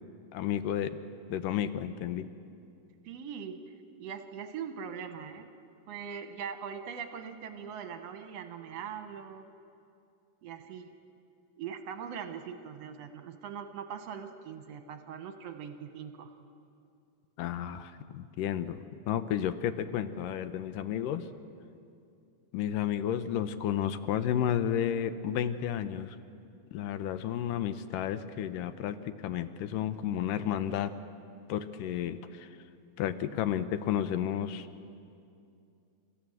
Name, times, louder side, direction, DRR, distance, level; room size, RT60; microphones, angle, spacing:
voice 1, 0.3-1.0 1.3-2.3 17.4-21.3 22.5-26.2 26.7-30.9 31.5-32.5 33.0-34.7, left 10 dB, 80° left, 11 dB, 2.3 m, -32 dB
voice 2, 3.0-5.5 5.9-9.5 10.4-10.9 11.6-16.4, right 7 dB, 60° right, 7 dB, 1.9 m, -41 dB
29.5 x 14.5 x 7.9 m, 2.5 s
omnidirectional pair, 3.9 m